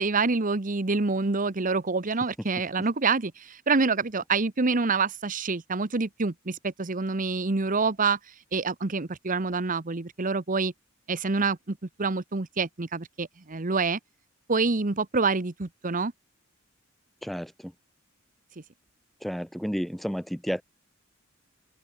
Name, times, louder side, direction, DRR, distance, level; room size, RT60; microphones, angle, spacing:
voice 1, 0.0-8.2 8.5-10.7 11.1-14.0 14.5-16.1, right 4 dB, 40° right, 1.0 m, -27 dB
voice 2, 17.2-17.7 19.2-20.6, equal, ahead, 0.7 m, -31 dB
head